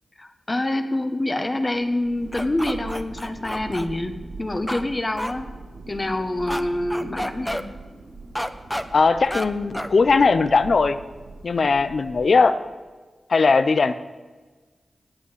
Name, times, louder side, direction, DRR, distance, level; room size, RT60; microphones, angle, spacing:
voice 1, 0.2-5.5 5.9-7.6, left 1 dB, 30° left, 6 dB, 1.6 m, -26 dB
Thunder, 1.8-12.7, right 3 dB, 70° right, 4.9 m, -41 dB
sound 1, 2.3-3.9 4.7-4.8 5.2-5.3 6.5-6.6 6.9-7.6 8.3-8.8 9.3-9.5 9.7-9.9, equal, 5° left, 1.1 m, -29 dB
voice 2, 8.9-11.0 11.4-12.5 13.3-13.9, left 4 dB, 65° left, 12 dB, 1.0 m, -18 dB
17.5 x 8.4 x 8.3 m, 1.3 s
cardioid pair, 60°, 0 cm